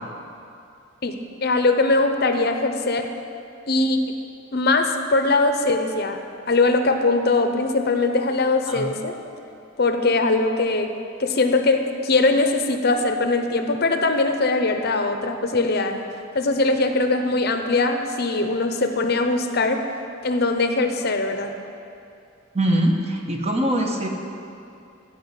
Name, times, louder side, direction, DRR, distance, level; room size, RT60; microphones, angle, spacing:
voice 1, 1.4-3.1 3.7-4.0 4.5-6.2 6.5-9.1 9.8-10.9 11.2-16.0 16.3-19.8 20.2-21.5, left 3 dB, 55° left, 6 dB, 0.8 m, -21 dB
voice 2, 22.5-24.1, right 1 dB, 35° right, 2 dB, 1.2 m, -22 dB
14.0 x 5.4 x 9.1 m, 2.6 s
head